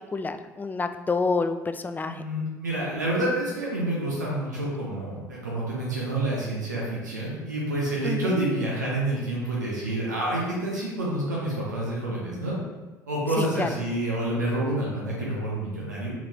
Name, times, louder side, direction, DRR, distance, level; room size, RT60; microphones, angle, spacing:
voice 1, 0.1-2.2 8.0-8.4 13.4-13.7, left 4 dB, 20° left, 9 dB, 0.3 m, -28 dB
voice 2, 2.1-12.6 13.1-16.1, right 1 dB, 90° right, -5 dB, 0.8 m, -28 dB
4.6 x 3.8 x 2.9 m, 1.2 s
figure-of-eight pair, 55°, 9 cm